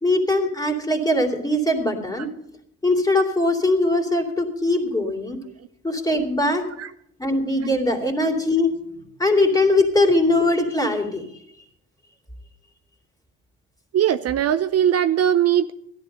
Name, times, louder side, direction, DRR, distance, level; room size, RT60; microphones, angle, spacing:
voice 1, 0.0-2.3 2.8-5.4 5.8-6.6 7.2-8.7 9.2-11.2, left 2 dB, 10° left, 2.7 m, -21 dB
voice 2, 13.9-15.7, right 10 dB, 55° right, 0.6 m, -20 dB
14.0 x 11.0 x 5.4 m
cardioid pair, 90°, 30 cm